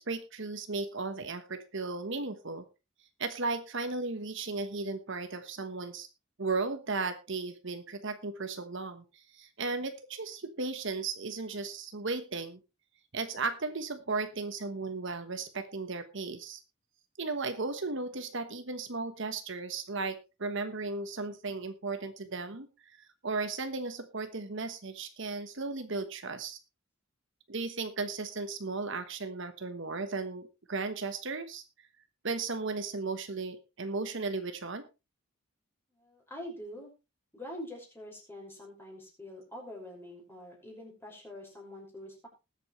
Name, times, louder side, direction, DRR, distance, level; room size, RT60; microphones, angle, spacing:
voice 1, 0.0-2.6 3.2-6.1 6.4-12.6 13.1-16.6 17.2-22.7 22.9-26.6 27.5-31.6 32.2-34.9, right 3 dB, 60° right, 8 dB, 1.2 m, -35 dB
voice 2, 35.9-36.9 37.3-42.3, left 1 dB, 10° left, -1 dB, 5.8 m, -45 dB
20.0 x 8.2 x 3.2 m, 0.28 s
head